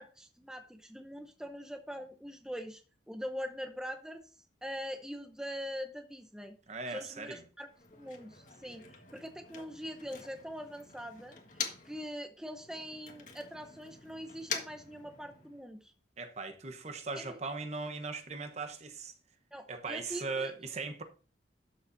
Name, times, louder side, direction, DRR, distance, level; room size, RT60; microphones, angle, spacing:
voice 1, 0.0-2.8 3.1-4.2 4.6-6.6 6.9-7.7 7.9-8.8 9.1-15.9 17.1-17.4 19.5-20.5, equal, 5° right, 0.7 m, -43 dB
voice 2, 6.7-7.4 16.2-19.1 19.7-21.0, right 4 dB, 40° right, 1.0 m, -39 dB
Motor vehicle (road), 7.6-12.1 12.4-15.7, left 6 dB, 45° left, 1.5 m, -45 dB
12.0 x 7.0 x 2.6 m
head